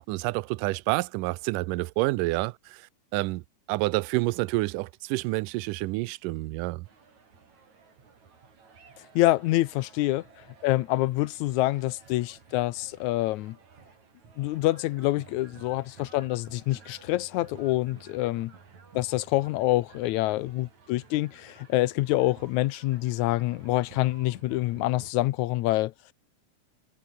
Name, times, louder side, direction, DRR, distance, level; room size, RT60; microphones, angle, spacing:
voice 1, 0.0-2.8 3.1-3.4 3.7-6.9, right 21 dB, 85° right, 2.2 m, -28 dB
sound 1, 6.8-25.1, right 5 dB, 60° right, 5.5 m, -54 dB
voice 2, 9.2-10.2 10.6-13.6 14.4-18.5 18.9-25.9, left 17 dB, 75° left, 1.9 m, -26 dB
omnidirectional pair, 3.7 m